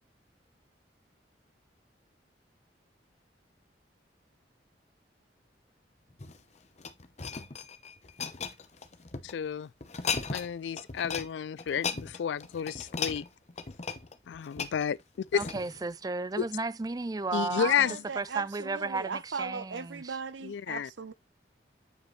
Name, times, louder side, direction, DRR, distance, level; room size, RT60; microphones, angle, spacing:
sound 1, 6.1-9.3 9.8-10.5 10.8-11.3 11.6-15.8 16.4-16.6, left 5 dB, 40° left, 0.8 m, -37 dB
voice 1, 9.2-9.7 10.3-13.2 14.3-15.0 15.3-15.4 16.4-16.5 17.3-18.0 20.4-20.9, left 8 dB, 75° left, 0.3 m, -31 dB
voice 2, 15.3-17.9 18.2-20.2, right 3 dB, 20° right, 0.4 m, -34 dB
voice 3, 17.6-21.1, right 5 dB, 90° right, 0.7 m, -38 dB
9.0 x 5.0 x 3.2 m
head